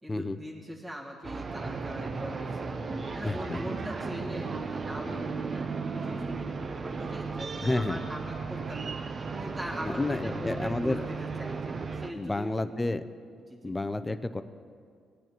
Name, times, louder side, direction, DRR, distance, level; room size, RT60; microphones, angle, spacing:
voice 1, 0.0-2.8 3.1-9.0 9.4-12.5 13.5-13.7, equal, 20° right, -4 dB, 1.8 m, -41 dB
sound 1, 1.2-12.1, right 4 dB, 40° right, 0.7 m, -35 dB
voice 2, 3.2-3.6 7.6-8.0 10.0-11.0 12.1-13.0 13.6-14.4, left 2 dB, 15° left, 11 dB, 0.5 m, -30 dB
19.0 x 9.0 x 3.0 m, 2.2 s
cardioid pair, 90°, 0 cm